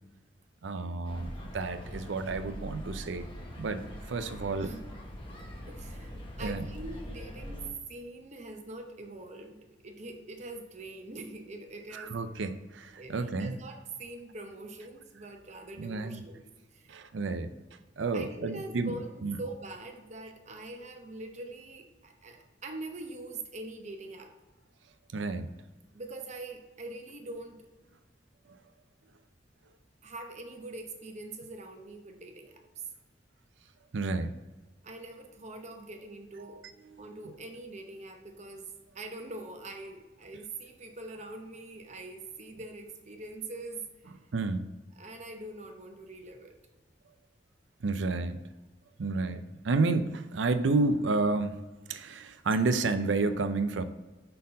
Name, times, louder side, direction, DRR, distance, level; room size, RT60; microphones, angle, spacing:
voice 1, 0.6-3.3 3.6-4.7 6.4-6.7 11.9-13.5 15.8-16.2 16.9-17.5 18.0-18.9 19.2-19.4 25.1-25.5 33.9-34.3 44.3-44.7 47.8-48.4 49.0-51.6 51.9-53.8, right 3 dB, 80° right, 11 dB, 0.5 m, -30 dB
sound 1, 1.0-7.7, equal, 30° left, 1.0 m, -42 dB
voice 2, 5.7-9.6 9.8-12.2 13.0-16.4 16.7-17.0 18.1-24.3 25.9-27.6 30.0-32.6 34.8-36.7 37.0-44.1 45.0-46.6, right 2 dB, 40° right, 4 dB, 0.8 m, -43 dB
5.5 x 4.3 x 5.2 m, 1.2 s
head